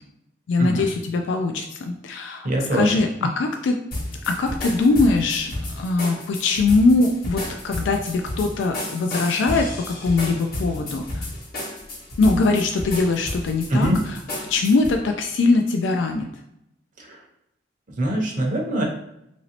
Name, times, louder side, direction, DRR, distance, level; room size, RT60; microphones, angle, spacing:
voice 1, 0.5-3.8 4.3-11.2 12.2-13.9 14.4-16.3, left 3 dB, 85° left, 4 dB, 0.3 m, -21 dB
voice 2, 2.4-3.0 13.7-14.0 17.0-17.2 18.0-18.8, right 1 dB, 45° right, 0 dB, 0.6 m, -23 dB
sound 1, 3.9-15.0, left 1 dB, 55° left, 1.0 m, -32 dB
2.9 x 2.6 x 2.8 m, 0.80 s
head